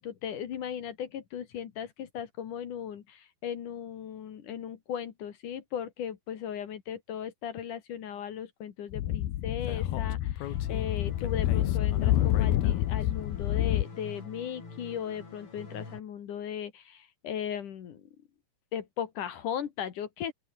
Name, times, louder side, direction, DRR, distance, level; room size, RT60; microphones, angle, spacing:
voice 1, 0.0-18.0 18.7-20.3, left 9 dB, 60° left, 3.1 m, -37 dB
Speech / Wind, 8.9-13.8, left 13 dB, 80° left, 3.3 m, -27 dB
sound 1, 10.4-16.0, left 4 dB, 35° left, 5.5 m, -46 dB
open air
omnidirectional pair, 4.3 m